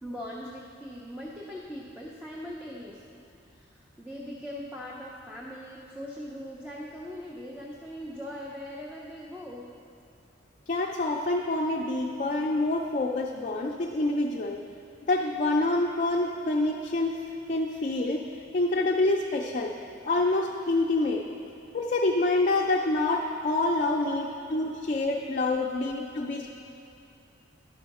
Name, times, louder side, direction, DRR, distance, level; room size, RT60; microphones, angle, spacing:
voice 1, 0.0-3.2 3.5-9.7 24.0-24.6 25.7-26.2, equal, 10° right, -4 dB, 0.6 m, -41 dB
voice 2, 10.7-14.6 15.1-17.2 17.5-18.2 18.5-19.7 20.0-21.3 21.7-26.5, left 2 dB, 40° left, 0 dB, 0.4 m, -27 dB
11.5 x 5.6 x 4.2 m, 2.7 s
head